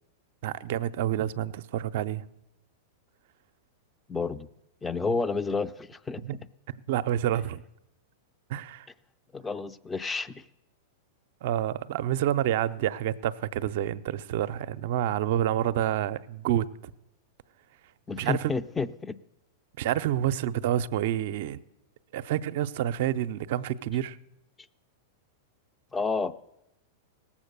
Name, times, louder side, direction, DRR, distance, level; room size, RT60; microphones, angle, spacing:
voice 1, 0.4-2.2 6.2-6.4 6.9-7.6 8.5-8.9 11.4-16.9 18.2-18.5 19.8-21.6 22.1-24.2, right 12 dB, 60° right, 0.5 m, -28 dB
voice 2, 4.1-4.5 4.8-6.2 9.3-10.5 18.1-19.2 25.9-26.4, left 4 dB, 15° left, 0.5 m, -30 dB
18.0 x 7.2 x 6.6 m
hypercardioid pair, 110°, 0 cm